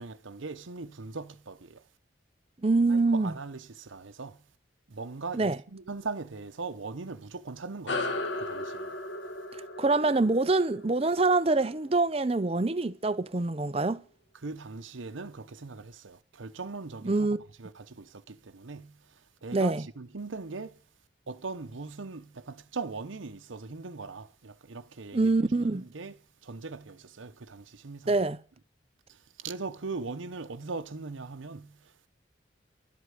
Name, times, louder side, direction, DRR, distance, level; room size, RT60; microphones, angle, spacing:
voice 1, 0.0-1.9 2.9-4.4 4.9-9.0 14.3-20.8 21.3-26.2 26.4-28.1 29.1-32.1, right 4 dB, 85° right, 0.9 m, -40 dB
voice 2, 2.6-3.3 5.3-5.6 9.5-14.0 17.0-17.5 19.5-19.8 25.1-25.8 28.1-28.4, right 3 dB, 30° right, 0.6 m, -25 dB
sound 1, 7.9-12.7, left 2 dB, 70° left, 1.6 m, -36 dB
12.5 x 8.3 x 9.4 m
head